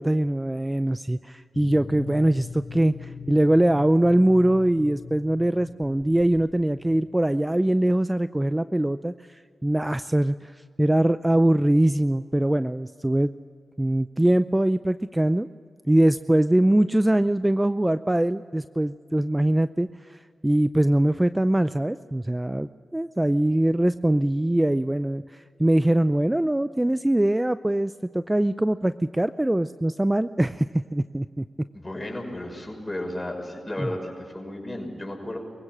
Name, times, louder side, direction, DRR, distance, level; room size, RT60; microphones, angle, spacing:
voice 1, 0.0-13.3 13.8-15.5 15.9-31.4 33.8-33.9, right 1 dB, 15° right, 13 dB, 0.5 m, -22 dB
sound 1, 1.5-7.5, left 4 dB, 85° left, 2.1 m, -41 dB
voice 2, 31.7-35.4, left 1 dB, 20° left, 2 dB, 6.1 m, -33 dB
23.5 x 16.0 x 7.4 m, 2.2 s
supercardioid pair, 40°, 0 cm